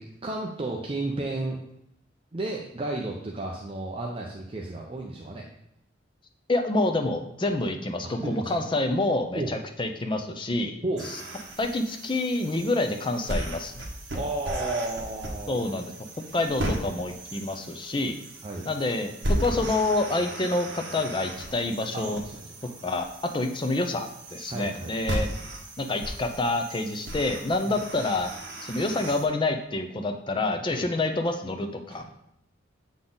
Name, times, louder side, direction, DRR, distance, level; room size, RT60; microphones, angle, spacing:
voice 1, 0.0-1.6 2.3-5.5 8.0-8.6 9.3-9.5 10.8-11.1 14.1-15.6 18.4-18.7 21.9-22.7 24.5-25.1 27.6-27.8 30.7-30.9, right 2 dB, 30° right, -1 dB, 0.5 m, -33 dB
voice 2, 6.5-10.7 11.6-13.9 15.5-15.9 16.3-18.2 18.7-22.2 22.8-23.1 23.3-25.3 25.8-28.3 28.6-32.0, left 2 dB, 25° left, 5 dB, 0.6 m, -27 dB
sound 1, 11.0-29.2, right 1 dB, 65° right, 1.3 m, -36 dB
7.3 x 3.9 x 3.8 m, 0.79 s
head